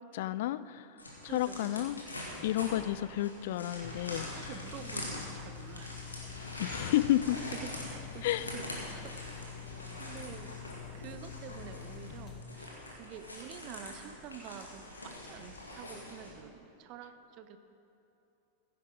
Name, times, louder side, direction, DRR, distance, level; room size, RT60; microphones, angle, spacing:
voice 1, 0.1-0.9 1.2-2.0 2.4-4.3 6.6-7.4 8.2-8.5, left 14 dB, 55° left, 17 dB, 0.3 m, -31 dB
sound 1, 1.0-16.3, left 1 dB, 80° left, 2.1 m, -44 dB
voice 2, 1.2-1.9 4.2-6.1 7.5-9.7 10.0-10.5 10.9-17.6, right 8 dB, 40° right, 10 dB, 0.7 m, -48 dB
sound 2, 3.8-12.4, left 8 dB, 25° left, 1.1 m, -46 dB
15.5 x 10.5 x 3.8 m, 2.9 s
figure-of-eight pair, 90°, 0 cm